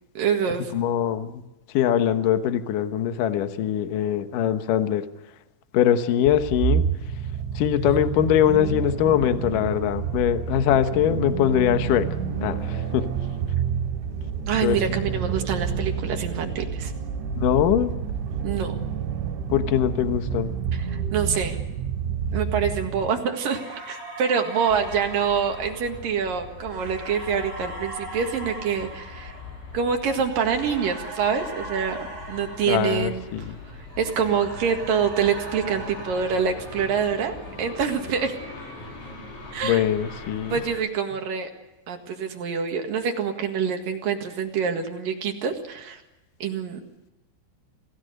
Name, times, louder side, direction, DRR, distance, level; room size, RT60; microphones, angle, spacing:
voice 1, 0.1-0.7 14.5-16.9 18.4-18.7 20.7-21.6 22.3-29.3 29.7-33.5 34.0-38.3 39.5-39.8 40.5-41.5 41.9-46.0 46.4-46.8, right 6 dB, 55° right, 4 dB, 2.9 m, -26 dB
voice 2, 0.7-1.4 1.7-5.0 5.7-6.9 7.6-12.1 12.4-13.1 14.6-14.8 17.4-17.9 19.5-20.5 32.7-33.6 39.6-40.6, left 10 dB, 90° left, 9 dB, 1.8 m, -22 dB
sound 1, 6.3-23.1, right 7 dB, 70° right, 4.7 m, -29 dB
sound 2, 23.3-33.5 33.9-37.3, right 2 dB, 35° right, 7.0 m, -40 dB
sound 3, 24.7-40.8, left 3 dB, 70° left, 7.3 m, -42 dB
27.5 x 17.5 x 6.6 m, 1.0 s
omnidirectional pair, 5.6 m